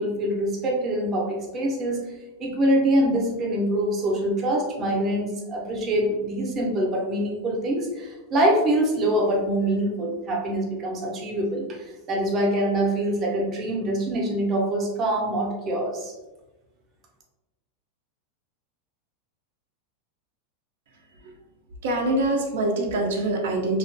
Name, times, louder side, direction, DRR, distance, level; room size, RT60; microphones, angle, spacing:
voice 1, 0.0-2.0 2.4-16.1, right 1 dB, 25° right, -2 dB, 0.5 m, -24 dB
voice 2, 21.8-23.8, right 2 dB, 80° right, 2 dB, 0.4 m, -24 dB
2.2 x 2.2 x 2.5 m, 1.1 s
supercardioid pair, 160°, 0 cm